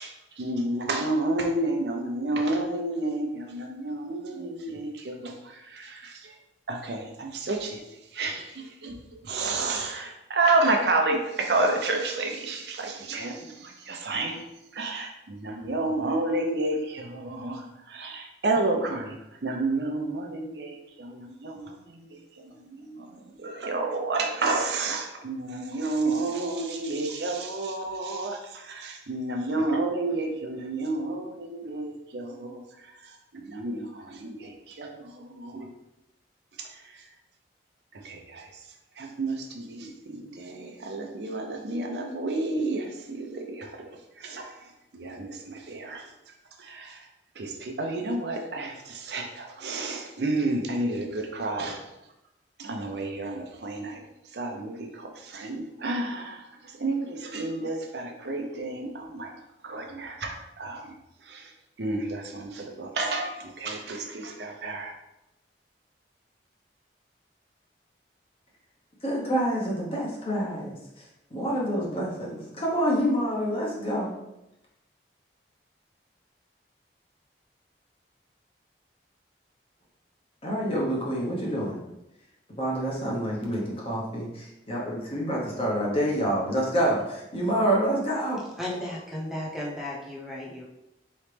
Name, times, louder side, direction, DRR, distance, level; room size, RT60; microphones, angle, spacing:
voice 1, 0.0-6.4 6.7-14.4 14.7-35.7 36.6-37.1 37.9-38.7 39.0-46.1 46.6-47.1 47.4-51.9 52.6-59.3 59.6-64.9, right 2 dB, 65° right, 2 dB, 0.6 m, -31 dB
voice 2, 69.0-71.0 71.3-74.2 80.4-81.8 82.6-88.4, equal, 30° left, -4 dB, 1.0 m, -27 dB
voice 3, 88.6-90.6, left 1 dB, ahead, -5 dB, 0.8 m, -34 dB
3.9 x 3.2 x 3.3 m, 0.90 s
head